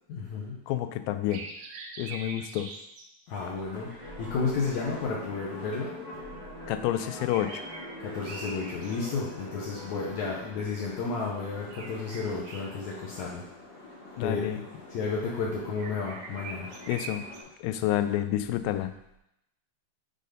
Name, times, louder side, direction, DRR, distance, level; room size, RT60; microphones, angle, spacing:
voice 1, 0.1-0.6 3.3-6.0 8.0-13.4 14.2-14.5 14.9-16.7, left 4 dB, 70° left, -4 dB, 1.9 m, -32 dB
voice 2, 0.7-1.5 2.0-2.7 6.7-7.6 14.2-14.6 16.9-17.3 17.6-18.9, left 12 dB, 90° left, 10 dB, 2.3 m, -29 dB
sound 1, 1.3-3.0 7.0-9.4 11.7-13.1 15.8-17.4, right 4 dB, 85° right, 2.6 m, -43 dB
sound 2, 3.4-17.4, left 2 dB, 50° left, 2.8 m, -47 dB
sound 3, 4.0-10.6, left 1 dB, 35° right, 1.8 m, -44 dB
6.5 x 4.1 x 5.1 m, 0.82 s
omnidirectional pair, 4.0 m